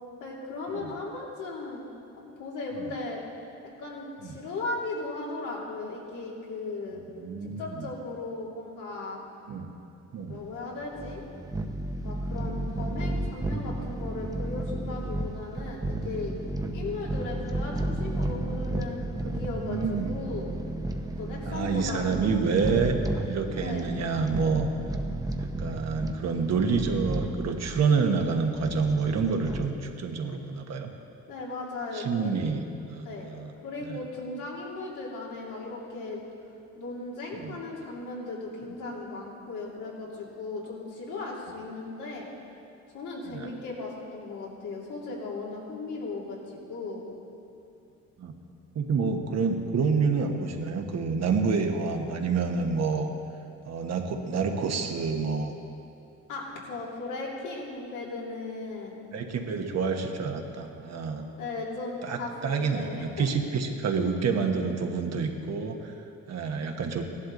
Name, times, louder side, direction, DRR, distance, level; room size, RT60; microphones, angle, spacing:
voice 1, 0.2-1.9 2.2-3.2 3.8-7.0 7.4-9.2 10.3-11.2 12.0-16.3 16.7-20.5 21.2-22.2 23.6-23.9 31.3-32.3 33.0-33.3 33.6-36.2 36.7-42.3 42.9-47.0 56.3-59.0 61.4-63.3, left 3 dB, 85° left, -4 dB, 2.9 m, -37 dB
voice 2, 6.9-7.9 9.5-9.7 10.1-10.4 12.3-12.6 16.7-16.9 19.6-20.1 21.4-22.9 23.3-24.7 25.4-30.9 31.9-32.6 32.9-33.5 33.8-34.0 37.3-37.6 43.3-43.5 48.2-48.3 48.7-53.1 53.7-55.6 59.1-61.2 62.0-65.9 66.3-67.0, right 5 dB, 60° right, 4 dB, 1.3 m, -28 dB
sound 1, 10.3-29.7, right 1 dB, 10° right, 0.9 m, -33 dB
16.0 x 11.5 x 4.0 m, 2.8 s
cardioid pair, 90°, 30 cm